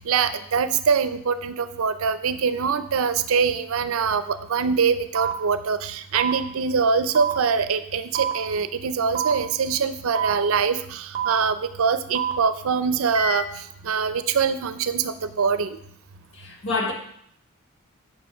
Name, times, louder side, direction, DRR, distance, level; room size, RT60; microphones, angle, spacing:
voice 1, 0.1-13.5 13.8-15.8, right 6 dB, 75° right, 0.5 m, -23 dB
sound 1, 5.1-5.3 6.1-6.3 7.1-7.3 8.1-8.3 9.1-9.3 10.1-10.3 11.1-11.3 12.1-12.3 13.1-13.3, right 8 dB, 20° right, 0.8 m, -26 dB
voice 2, 16.3-16.9, left 3 dB, 60° left, 1.2 m, -28 dB
6.1 x 5.1 x 6.0 m
head